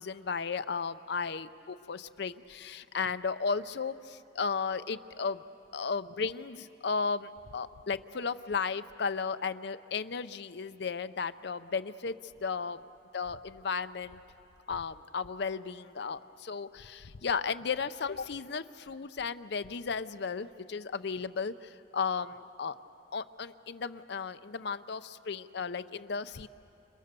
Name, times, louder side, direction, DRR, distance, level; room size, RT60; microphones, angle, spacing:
voice 1, 0.0-5.4 5.7-12.2 12.4-12.8 13.1-14.2 14.7-22.8 23.1-26.5, left 5 dB, 60° left, 12 dB, 0.6 m, -34 dB
29.5 x 29.5 x 6.8 m, 2.9 s
head